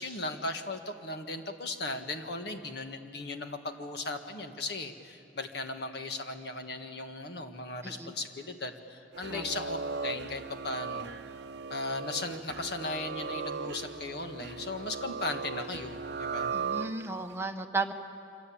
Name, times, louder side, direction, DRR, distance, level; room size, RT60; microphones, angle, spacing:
voice 1, 0.0-9.8 10.0-11.1 11.7-16.5, left 2 dB, 60° left, 5 dB, 1.8 m, -37 dB
sound 1, 9.1-17.3, right 5 dB, 65° right, 0.7 m, -37 dB
voice 2, 16.5-17.9, right 3 dB, 15° right, 4 dB, 1.2 m, -34 dB
26.0 x 25.0 x 8.7 m, 2.7 s
head